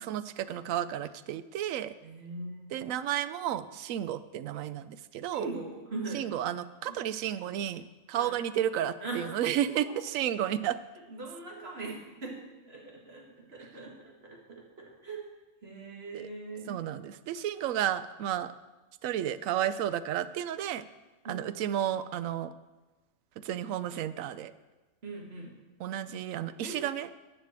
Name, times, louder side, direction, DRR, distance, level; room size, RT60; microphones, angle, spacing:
voice 1, 0.1-1.9 2.7-5.5 6.1-10.8 16.1-16.3 16.7-18.5 19.0-20.8 21.3-22.5 23.4-24.5 25.8-27.1, right 11 dB, 85° right, 14 dB, 1.0 m, -32 dB
voice 2, 2.0-2.7 5.3-6.3 6.9-7.0 8.1-8.3 9.0-9.3 9.8-9.9 11.1-15.2 15.6-16.8 21.2-21.7 25.0-25.5 26.6-26.8, right 3 dB, 50° right, -1 dB, 2.3 m, -41 dB
10.5 x 6.7 x 7.5 m, 1.2 s
omnidirectional pair, 1.4 m